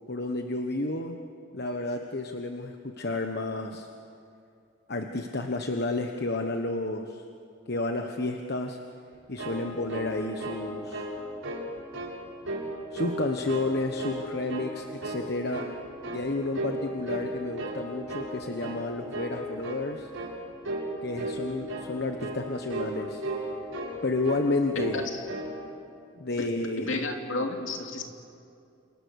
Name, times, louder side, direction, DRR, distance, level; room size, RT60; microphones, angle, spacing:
voice 1, 0.1-1.2 1.5-3.9 4.9-7.2 7.7-8.8 9.3-11.1 12.9-15.6 16.1-20.1 21.0-23.2 24.0-25.0 26.2-26.9, left 2 dB, 50° left, 4 dB, 1.3 m, -31 dB
sound 1, 9.1-10.7 10.9-11.2 11.4-12.1 12.4-13.2 13.5-14.2 14.5-14.7 15.0-16.3 16.5-16.8 17.1-17.8 18.1-18.3 18.6-18.8 19.1-19.4 19.6-19.9 20.1-20.4 20.6-20.9 21.1-21.4 21.7-21.9 22.2-22.4 22.7-22.9 23.2-24.0 24.2-24.5 24.7-25.0 25.3-25.5, right 1 dB, 75° right, 7.0 m, -34 dB
voice 2, 24.9-25.2 26.4-28.0, left 2 dB, 65° left, 2 dB, 2.9 m, -32 dB
29.0 x 28.5 x 6.6 m, 2.5 s
head